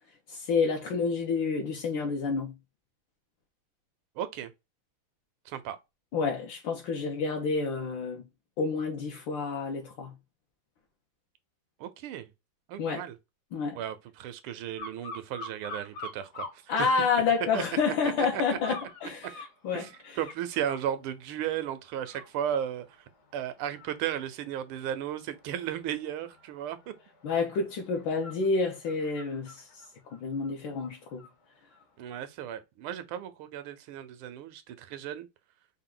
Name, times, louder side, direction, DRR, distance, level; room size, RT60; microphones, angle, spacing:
voice 1, 0.3-2.5 6.1-8.2 8.6-10.1 12.8-13.0 13.5-13.8 16.7-19.8 27.2-29.8 30.1-31.2, left 5 dB, 70° left, 1.4 m, -29 dB
voice 2, 4.2-4.5 5.5-5.8 11.8-12.3 12.7-13.2 13.7-17.0 17.5-17.6 18.0-18.7 19.7-23.0 23.3-26.9 32.0-35.3, right 10 dB, 90° right, 1.5 m, -35 dB
sound 1, 14.8-16.6 17.0-17.7 18.6-20.9 21.4-21.6 22.0-31.3 31.7-31.8, left 2 dB, 55° left, 1.2 m, -46 dB
4.6 x 2.1 x 3.7 m
omnidirectional pair, 2.3 m